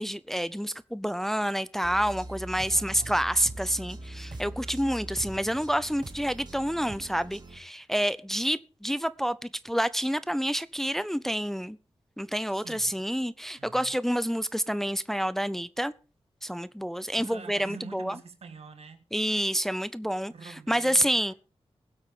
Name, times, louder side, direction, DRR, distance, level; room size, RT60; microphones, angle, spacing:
voice 1, 0.0-11.8 12.2-15.9 16.4-18.2 19.1-21.3, equal, 5° left, 0.6 m, -28 dB
sound 1, 1.8-7.6, right 1 dB, 45° right, 2.4 m, -42 dB
voice 2, 2.7-3.2 12.5-12.9 13.6-14.0 16.9-19.1 20.3-21.3, right 5 dB, 80° right, 1.7 m, -46 dB
21.0 x 8.0 x 3.7 m
wide cardioid pair, 80°, 10 cm